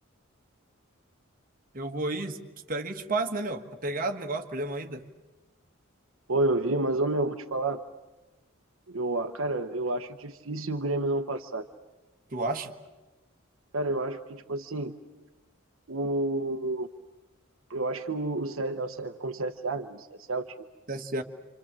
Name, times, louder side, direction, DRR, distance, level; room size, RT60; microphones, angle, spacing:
voice 1, 1.7-2.4 2.7-5.0 12.3-12.7 20.9-21.2, right 2 dB, 40° right, 4 dB, 1.5 m, -31 dB
voice 2, 6.3-7.8 8.9-11.7 13.7-14.9 15.9-16.9 17.7-20.5, right 2 dB, 70° right, 5 dB, 0.9 m, -30 dB
28.0 x 26.5 x 7.5 m, 1.1 s
head